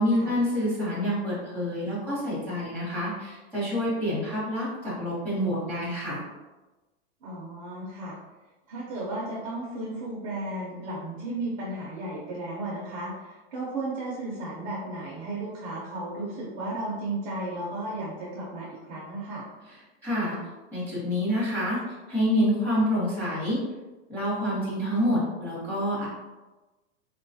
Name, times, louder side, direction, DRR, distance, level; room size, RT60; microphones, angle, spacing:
voice 1, 0.0-6.2 20.0-20.3 20.7-21.8 22.1-23.6 24.1-26.1, equal, 5° left, -10 dB, 0.9 m, -27 dB
voice 2, 7.2-8.2 8.7-19.4, right 2 dB, 30° right, -6 dB, 0.5 m, -34 dB
3.8 x 2.3 x 2.6 m, 1.1 s
supercardioid pair, 170°, 34 cm